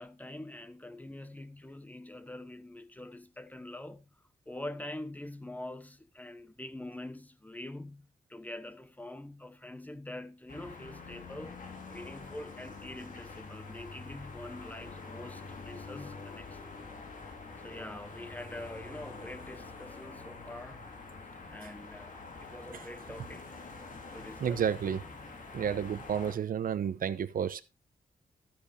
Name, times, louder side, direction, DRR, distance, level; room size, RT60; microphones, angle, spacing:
voice 1, 0.0-4.0 4.5-11.6 11.9-16.8 17.6-20.8 21.5-23.6 24.1-24.7, left 1 dB, 10° left, 0.9 m, -45 dB
sound 1, 10.5-26.3, left 3 dB, 60° left, 2.6 m, -46 dB
voice 2, 24.4-25.0 25.5-27.6, right 8 dB, 70° right, 0.8 m, -31 dB
12.0 x 10.5 x 2.7 m
cardioid pair, 100°, 15 cm